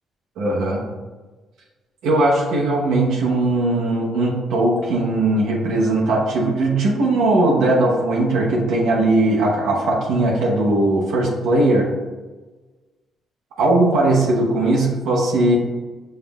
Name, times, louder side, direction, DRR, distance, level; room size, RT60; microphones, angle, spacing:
voice 1, 0.4-0.8 2.0-11.9 13.6-15.6, right 2 dB, 85° right, -3 dB, 0.8 m, -19 dB
5.5 x 3.2 x 2.3 m, 1.3 s
cardioid pair, 90°, 0 cm